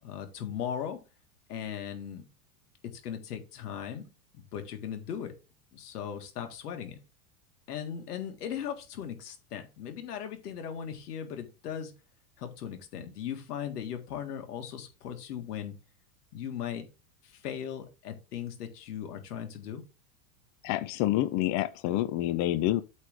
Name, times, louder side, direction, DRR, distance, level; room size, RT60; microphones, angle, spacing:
voice 1, 0.0-1.0 1.5-2.2 2.8-4.1 4.3-5.3 5.7-7.0 7.7-11.9 12.4-15.7 16.3-16.9 17.2-19.8, left 9 dB, 90° left, 1.9 m, -38 dB
voice 2, 20.6-22.8, left 14 dB, 40° left, 0.5 m, -28 dB
8.2 x 3.3 x 5.0 m
supercardioid pair, 125°, 45 cm